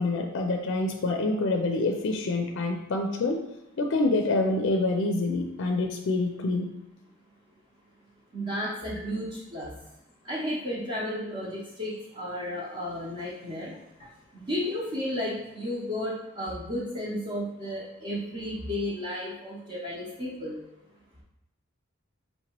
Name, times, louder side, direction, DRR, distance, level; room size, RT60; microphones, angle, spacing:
voice 1, 0.0-3.4 3.8-6.7, left 2 dB, 60° left, 3 dB, 0.4 m, -26 dB
voice 2, 8.3-9.7 10.2-13.7 14.3-20.6, left 1 dB, 35° right, -7 dB, 0.8 m, -33 dB
5.4 x 2.9 x 2.9 m, 0.88 s
head